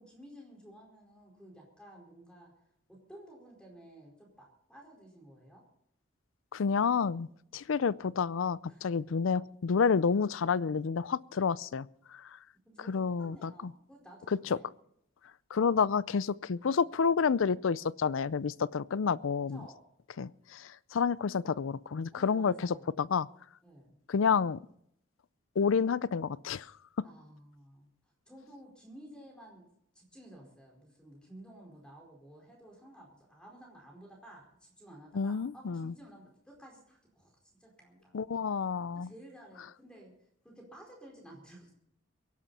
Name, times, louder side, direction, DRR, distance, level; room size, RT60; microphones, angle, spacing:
voice 1, 0.0-2.5 2.9-5.6 8.7-8.8 12.6-14.7 19.3-19.8 22.1-23.0 23.6-24.0 27.0-27.9 28.3-29.6 29.9-38.2 38.9-41.7, right 1 dB, 5° left, -1 dB, 4.7 m, -53 dB
voice 2, 6.5-7.3 7.5-11.9 12.9-13.5 15.5-19.6 20.2-23.3 24.1-24.6 25.6-26.7 35.1-35.9 38.1-39.1, left 6 dB, 80° left, 20 dB, 0.5 m, -29 dB
23.5 x 11.0 x 4.2 m, 0.72 s
head